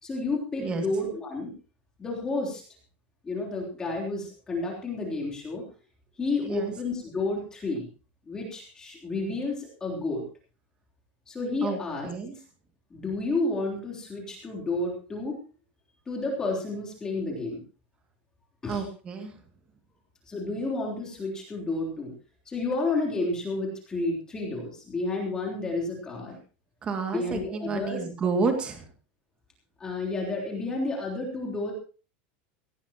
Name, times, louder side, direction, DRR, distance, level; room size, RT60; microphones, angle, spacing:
voice 1, 0.0-1.5 2.0-2.6 3.2-5.6 6.2-7.9 8.3-10.2 11.3-12.1 12.9-15.4 16.1-17.6 18.6-18.8 20.3-22.1 22.4-26.3 27.1-28.0 29.8-31.7, left 2 dB, 10° left, -1 dB, 3.4 m, -31 dB
voice 2, 6.4-6.7 11.6-12.4 18.7-19.3 26.8-28.9, right 4 dB, 20° right, 5 dB, 2.2 m, -30 dB
18.0 x 17.0 x 2.9 m, 0.36 s
supercardioid pair, 175°, 6 cm